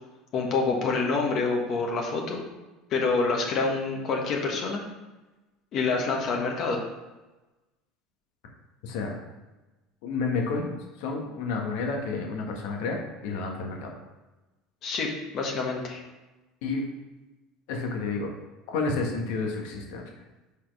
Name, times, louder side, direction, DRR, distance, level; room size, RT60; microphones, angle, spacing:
voice 1, 0.3-2.4 2.9-4.8 5.7-6.8 14.8-15.1 15.3-16.0, left 4 dB, 50° left, 0 dB, 1.4 m, -27 dB
voice 2, 8.8-9.1 10.0-13.9 16.6-16.8 17.7-18.3 18.7-20.0, left 4 dB, 75° left, 1 dB, 1.6 m, -30 dB
5.7 x 4.3 x 5.4 m, 1.1 s
supercardioid pair, 110°, 0 cm